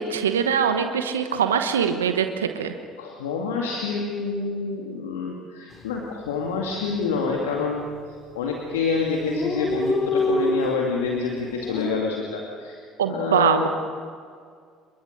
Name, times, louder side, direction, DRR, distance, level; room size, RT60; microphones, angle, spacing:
voice 1, 0.0-2.7 13.0-13.7, right 7 dB, 85° right, 7 dB, 1.1 m, -23 dB
voice 2, 3.0-7.8 8.3-12.8 13.1-13.7, left 5 dB, 80° left, 0 dB, 2.3 m, -27 dB
Dog, 5.7-6.0 6.3-6.4 6.6-7.3 7.9-8.2 8.5-8.6 8.7-8.8 9.0-11.9, left 1 dB, 30° left, 3.9 m, -27 dB
28.0 x 23.0 x 6.6 m, 2.1 s
hypercardioid pair, 60°, 0 cm